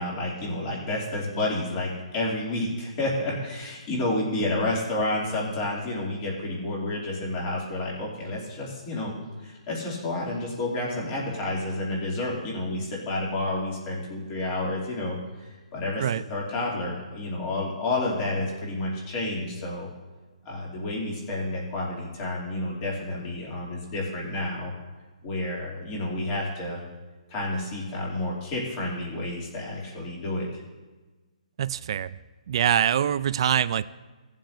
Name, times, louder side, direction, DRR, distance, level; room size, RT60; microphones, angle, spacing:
voice 1, 0.0-9.1 9.4-19.9 20.4-24.7 25.2-26.8 27.3-30.5, left 2 dB, 20° left, -4 dB, 2.7 m, -30 dB
voice 2, 31.6-32.2 32.5-33.9, right 9 dB, 40° right, 16 dB, 0.4 m, -24 dB
18.0 x 7.3 x 2.7 m, 1.3 s
hypercardioid pair, 165°, 4 cm